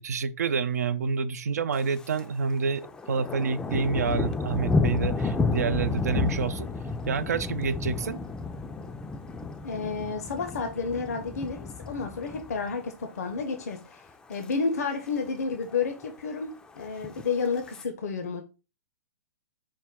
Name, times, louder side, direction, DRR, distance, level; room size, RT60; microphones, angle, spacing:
voice 1, 0.0-6.7 7.1-8.2, right 5 dB, 75° right, 0.4 m, -28 dB
Thunder, 1.7-2.3 2.6-12.9 13.3-13.6 14.1-14.5 14.8-14.9 15.1-15.2 15.5-16.1 16.9-17.8, left 3 dB, 10° left, 0.3 m, -31 dB
voice 2, 9.6-18.4, left 5 dB, 70° left, 0.6 m, -31 dB
4.6 x 2.1 x 3.6 m
hypercardioid pair, 120°, 9 cm